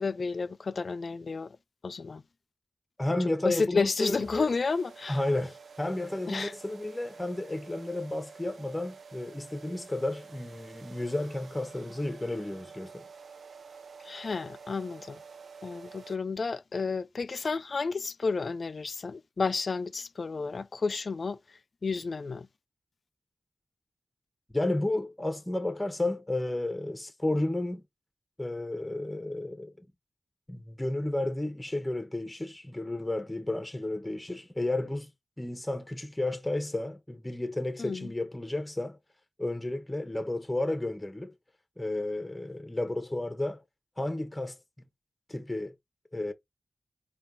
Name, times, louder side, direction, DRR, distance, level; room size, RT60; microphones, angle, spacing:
voice 1, 0.0-1.6 1.8-2.2 3.4-5.2 6.3-6.5 14.0-15.2 15.6-22.5 37.8-38.1, left 4 dB, 65° left, 0.3 m, -31 dB
voice 2, 3.0-4.5 5.1-13.0 24.5-27.8 28.4-29.7 30.5-35.1 35.4-39.0 39.4-41.3 41.8-43.6 44.0-44.6 45.3-45.7 46.1-46.3, left 1 dB, 15° left, 0.9 m, -32 dB
sound 1, 4.1-16.2, right 5 dB, 85° right, 0.4 m, -50 dB
4.2 x 2.3 x 3.7 m
cardioid pair, 50°, 0 cm